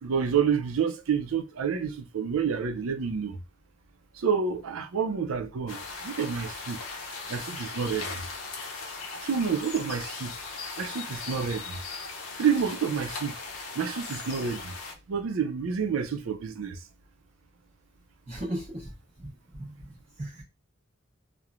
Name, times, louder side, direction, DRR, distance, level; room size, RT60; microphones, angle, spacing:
voice 1, 0.0-3.4 4.2-6.8 7.3-8.1 9.2-10.3 10.8-11.8 12.4-13.3 13.8-14.7 15.1-16.8, right 6 dB, 90° right, 0.4 m, -28 dB
sound 1, 5.7-14.9, left 4 dB, 85° left, 0.7 m, -38 dB
voice 2, 18.3-20.4, right 1 dB, 35° right, 0.8 m, -38 dB
3.0 x 2.0 x 2.4 m
head